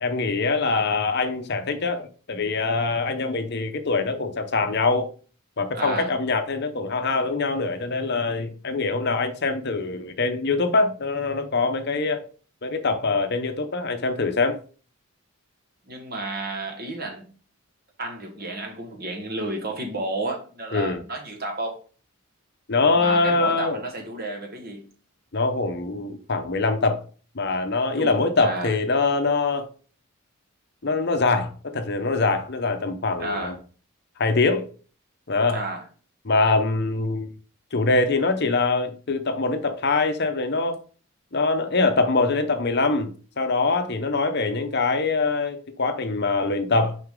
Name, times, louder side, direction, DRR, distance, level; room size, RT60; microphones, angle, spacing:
voice 1, 0.0-5.1 5.6-12.2 12.6-14.6 20.7-21.0 22.7-23.8 25.3-27.0 27.3-29.7 30.8-33.5 34.2-34.7 35.3-35.6 36.2-37.3 37.7-40.8 41.3-47.0, left 3 dB, 50° left, 0.8 m, -23 dB
voice 2, 5.7-6.1 15.9-17.2 18.0-21.8 22.9-24.8 28.0-28.7 33.2-33.6 35.5-35.8, right 2 dB, 45° right, 1.5 m, -31 dB
6.5 x 4.8 x 3.7 m
head